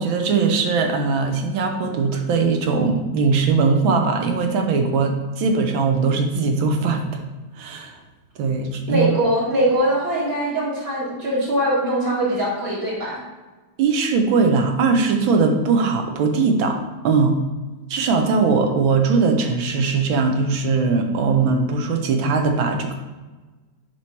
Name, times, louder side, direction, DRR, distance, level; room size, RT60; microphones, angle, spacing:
voice 1, 0.0-7.2 7.6-8.0 8.4-9.2 13.8-17.4 17.9-23.0, right 4 dB, 80° right, 4 dB, 1.6 m, -20 dB
voice 2, 8.9-13.2, right 1 dB, 55° right, -7 dB, 2.5 m, -22 dB
7.2 x 3.1 x 5.8 m, 1.2 s
omnidirectional pair, 2.2 m